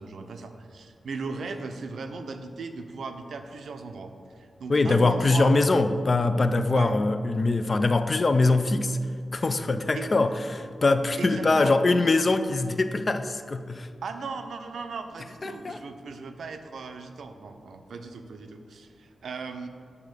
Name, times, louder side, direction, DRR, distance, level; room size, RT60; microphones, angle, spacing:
voice 1, 0.0-5.5 6.7-6.9 9.9-10.1 11.2-11.7 14.0-19.7, right 4 dB, 80° right, 7 dB, 0.5 m, -37 dB
voice 2, 4.7-9.0 9.3-13.9 15.4-15.8, left 3 dB, 35° left, 9 dB, 0.3 m, -23 dB
8.3 x 3.6 x 6.6 m, 2.1 s
wide cardioid pair, 155°, 0 cm